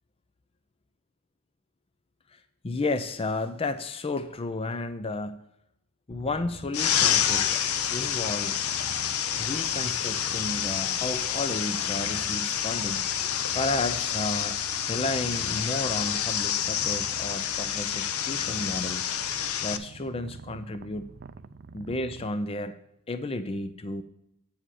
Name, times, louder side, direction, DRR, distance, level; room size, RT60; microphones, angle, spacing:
voice 1, 2.3-5.5 6.1-7.7 7.9-8.6 9.4-13.0 13.5-14.6 14.8-19.1 19.6-21.1 21.7-22.7 23.1-24.0, left 2 dB, 25° left, 11 dB, 0.5 m, -32 dB
Purr, 6.1-22.3, right 4 dB, 45° right, 0.4 m, -46 dB
sound 1, 6.7-19.8, left 9 dB, 75° left, 0.6 m, -28 dB
8.8 x 7.5 x 4.8 m, 0.81 s
head